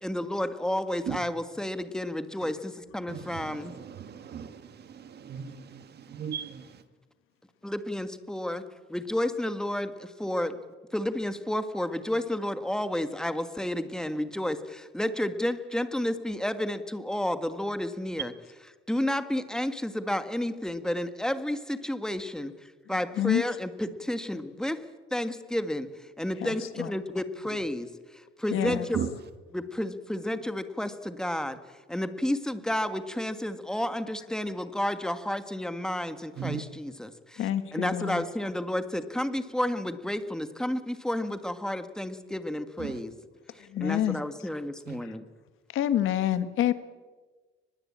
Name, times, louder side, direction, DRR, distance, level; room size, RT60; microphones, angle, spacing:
voice 1, 0.0-3.7 7.6-8.6 8.9-10.6 10.9-18.3 18.9-24.8 25.1-29.0 29.5-31.6 31.9-37.4 37.7-43.1 43.5-45.2, left 1 dB, 5° left, 1.6 m, -31 dB
voice 2, 3.1-6.7 28.7-29.1 36.4-36.6 42.8-43.0 44.9-45.0, right 8 dB, 55° right, 1.8 m, -37 dB
voice 3, 22.9-23.4 26.4-26.9 28.5-28.9 37.4-38.3 43.6-44.2 45.0-45.1 45.7-46.7, left 11 dB, 80° left, 1.7 m, -28 dB
24.0 x 21.0 x 8.7 m
cardioid pair, 130°, 21 cm